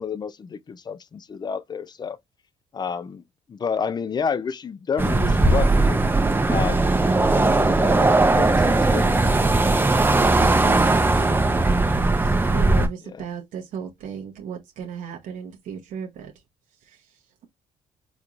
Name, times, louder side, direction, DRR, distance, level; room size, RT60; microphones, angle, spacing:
voice 1, 0.0-2.2 2.7-3.2 3.5-6.0 6.5-6.9 7.3-9.4 13.0-13.2, left 6 dB, 30° left, 0.3 m, -30 dB
sound 1, 5.0-12.9, right 2 dB, 15° right, 0.6 m, -19 dB
voice 2, 10.0-11.5 12.0-16.3, right 7 dB, 70° right, 0.8 m, -35 dB
3.5 x 3.0 x 2.4 m
supercardioid pair, 70°, 14 cm